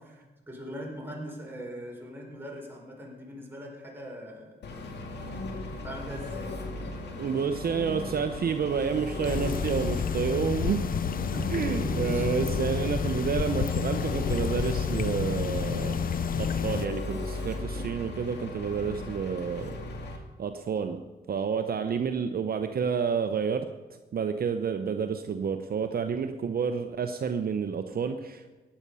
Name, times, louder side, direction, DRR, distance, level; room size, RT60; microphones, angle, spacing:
voice 1, 0.0-5.4 5.6-6.7 11.3-12.3, equal, 10° right, -2 dB, 4.7 m, -41 dB
Engine, 4.6-20.2, left 2 dB, 80° left, 2.1 m, -36 dB
voice 2, 7.2-10.9 11.5-16.0 16.4-19.8 20.4-21.0 21.3-23.7 24.1-28.5, right 6 dB, 60° right, 7 dB, 0.8 m, -29 dB
sound 1, 9.2-16.9, left 7 dB, 55° left, 0.6 m, -30 dB
15.5 x 9.9 x 5.6 m, 1.2 s
cardioid pair, 80°, 17 cm